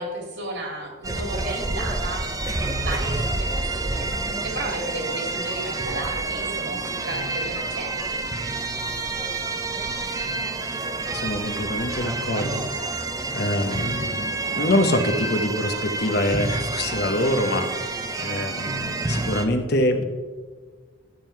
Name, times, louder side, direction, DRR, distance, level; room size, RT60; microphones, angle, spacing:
voice 1, 0.0-2.3 2.8-4.1 4.4-8.2, right 2 dB, 55° right, 1 dB, 2.3 m, -33 dB
sound 1, 1.0-19.4, right 2 dB, 15° right, 0.6 m, -28 dB
voice 2, 11.1-20.0, left 1 dB, 50° left, 6 dB, 0.9 m, -25 dB
11.0 x 7.4 x 4.5 m, 1.4 s
head